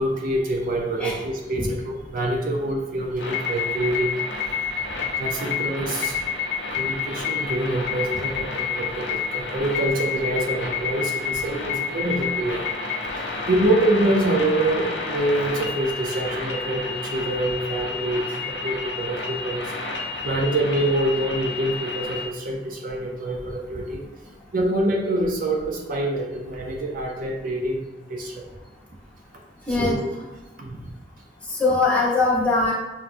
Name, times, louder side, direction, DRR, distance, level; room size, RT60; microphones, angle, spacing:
voice 1, 0.0-6.2 6.5-12.7 13.5-19.7 20.2-24.0 24.5-28.4 29.7-30.1 30.6-30.8, right 1 dB, 50° right, 0 dB, 0.4 m, -26 dB
sound 1, 3.2-22.3, left 5 dB, 65° left, 0.5 m, -29 dB
voice 2, 29.7-30.0 31.5-32.7, left 3 dB, 5° left, -7 dB, 0.9 m, -21 dB
5.8 x 2.2 x 2.5 m, 1.1 s
head